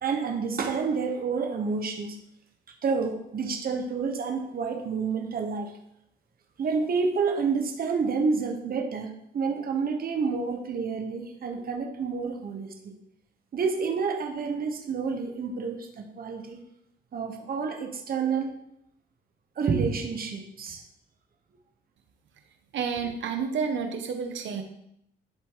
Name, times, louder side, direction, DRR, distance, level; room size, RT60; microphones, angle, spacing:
voice 1, 0.0-2.2 2.8-5.7 6.6-12.9 13.5-16.6 17.1-18.6 19.6-20.8, right 5 dB, 50° right, 3 dB, 1.3 m, -29 dB
voice 2, 22.7-24.6, right 6 dB, 70° right, 5 dB, 1.2 m, -30 dB
11.0 x 4.3 x 4.0 m, 0.77 s
cardioid pair, 90°, 20 cm